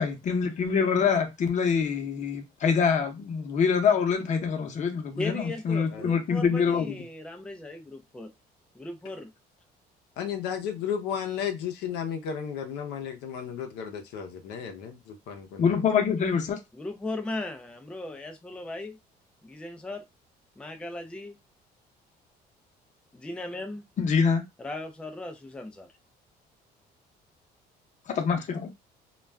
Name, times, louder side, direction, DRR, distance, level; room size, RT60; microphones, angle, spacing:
voice 1, 0.0-7.0 15.6-16.6 24.0-24.5 28.1-28.7, left 6 dB, 45° left, 0.7 m, -25 dB
voice 2, 5.2-8.3 8.7-9.3 16.7-19.0 19.4-20.0 20.6-21.4 23.1-23.8 24.6-25.9, left 2 dB, 5° left, 0.4 m, -37 dB
voice 3, 10.2-15.8, left 8 dB, 85° left, 0.6 m, -34 dB
2.3 x 2.2 x 3.3 m
cardioid pair, 110°, 17 cm